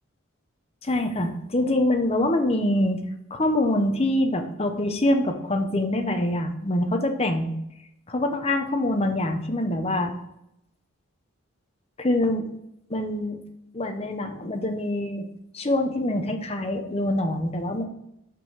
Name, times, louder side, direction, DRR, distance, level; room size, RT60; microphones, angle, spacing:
voice 1, 0.8-3.0 3.3-7.5 8.1-10.1 12.0-12.4 12.9-13.4 13.7-15.3 15.5-17.8, left 1 dB, 30° left, 5 dB, 0.8 m, -25 dB
5.9 x 5.4 x 4.7 m, 0.81 s
head